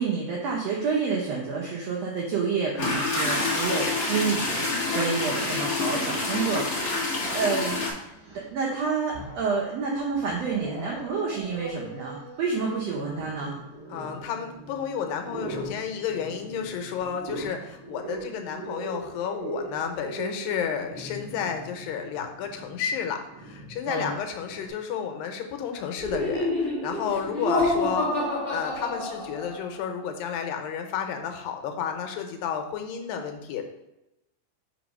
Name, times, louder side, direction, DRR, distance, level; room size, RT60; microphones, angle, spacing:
voice 1, 0.0-7.8 8.3-13.5 23.9-24.1, right 5 dB, 80° right, -2 dB, 1.4 m, -29 dB
sound 1, 2.8-7.9, left 3 dB, 65° left, 0.8 m, -27 dB
Growling, 7.5-8.5 9.0-9.7 10.1-24.7, right 2 dB, 60° right, 0.9 m, -41 dB
voice 2, 13.9-33.6, left 7 dB, 85° left, 5 dB, 2.4 m, -31 dB
Laughter, 26.0-29.7, left 1 dB, 20° right, 1.6 m, -28 dB
4.8 x 3.8 x 5.2 m, 0.93 s
omnidirectional pair, 4.0 m